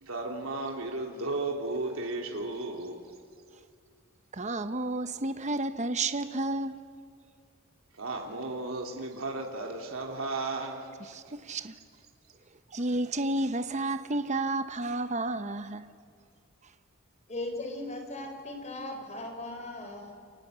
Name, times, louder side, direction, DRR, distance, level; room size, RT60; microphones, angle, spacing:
voice 1, 0.0-3.0 8.0-11.2, right 2 dB, 85° right, 3.1 m, -34 dB
voice 2, 4.3-6.8 11.1-11.7 12.7-15.9, right 2 dB, 35° right, 0.9 m, -31 dB
voice 3, 17.3-20.1, left 2 dB, 35° left, 4.3 m, -38 dB
29.0 x 25.0 x 8.2 m
head